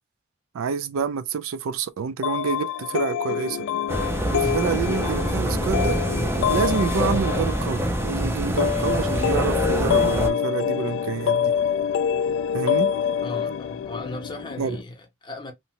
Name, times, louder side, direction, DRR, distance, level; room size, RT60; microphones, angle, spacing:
voice 1, 0.5-3.6 4.3-6.0 6.5-11.5 12.5-12.9 14.6-14.8, right 6 dB, 75° right, 0.4 m, -28 dB
sound 1, 2.2-14.8, left 7 dB, 65° left, 0.3 m, -26 dB
sound 2, 3.9-10.3, right 1 dB, 10° right, 0.4 m, -25 dB
voice 2, 13.2-15.5, left 2 dB, 25° left, 0.7 m, -36 dB
2.7 x 2.1 x 2.8 m
head